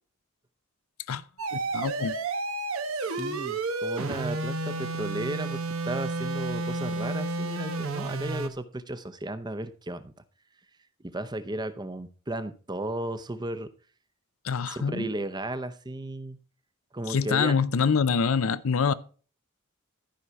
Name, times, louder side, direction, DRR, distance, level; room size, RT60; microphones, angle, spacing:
sound 1, 1.4-8.5, right 3 dB, 85° right, 1.1 m, -31 dB
voice 1, 1.5-2.1 14.4-15.1 17.1-18.9, left 6 dB, 80° left, 0.5 m, -25 dB
voice 2, 2.9-5.6 5.9-10.1 11.1-13.7 14.7-16.4 16.9-17.5, right 1 dB, 20° right, 0.7 m, -34 dB
13.0 x 5.5 x 4.6 m
head